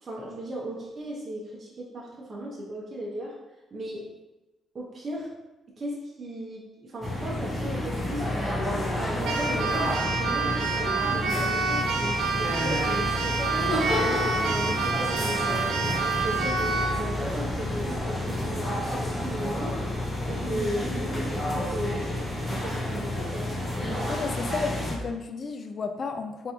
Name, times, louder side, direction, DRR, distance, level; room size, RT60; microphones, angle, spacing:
voice 1, 0.0-3.3 3.7-4.1 4.7-5.3 5.8-8.2 9.0-13.6 14.0-19.8 20.3-23.5, right 1 dB, 40° right, -5 dB, 0.9 m, -36 dB
sound 1, 7.0-25.0, left 1 dB, 30° left, 1.0 m, -30 dB
Keyboard (musical), 9.2-17.0, right 4 dB, 85° right, 0.5 m, -28 dB
voice 2, 24.1-26.5, left 4 dB, 45° left, 7 dB, 0.4 m, -33 dB
4.0 x 3.6 x 2.8 m, 1.1 s
cardioid pair, 90°, 0 cm